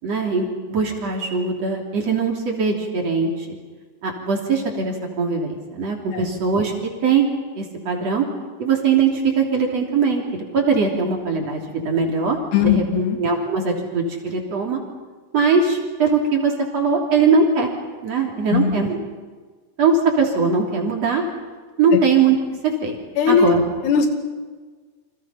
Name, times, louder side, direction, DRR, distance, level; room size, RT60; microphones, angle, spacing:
voice 1, 0.0-3.6 4.0-7.3 7.6-8.3 8.6-14.8 15.3-17.7 18.0-19.0 19.8-21.2 21.8-22.4 22.6-23.0 23.3-23.6, right 5 dB, 40° right, 0 dB, 4.0 m, -21 dB
voice 2, 12.5-13.2 18.5-18.8 23.2-23.5 23.8-24.1, left 7 dB, 90° left, 5 dB, 4.4 m, -18 dB
29.0 x 26.5 x 5.8 m, 1.4 s
omnidirectional pair, 4.6 m